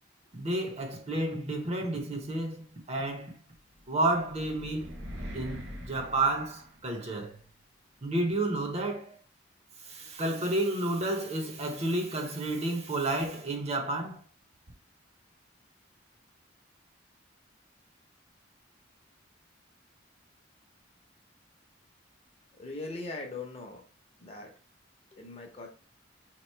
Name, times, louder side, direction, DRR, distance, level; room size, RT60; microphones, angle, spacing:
voice 1, 0.3-3.4 3.9-5.0 5.3-7.4 8.0-9.1 9.8-14.2, right 2 dB, 35° right, 0.7 m, -31 dB
sound 1, 3.7-7.2, equal, 80° right, 1.0 m, -43 dB
voice 2, 22.5-23.8 24.2-24.5 25.1-25.7, left 3 dB, 30° left, 0.7 m, -40 dB
3.0 x 2.5 x 4.3 m
head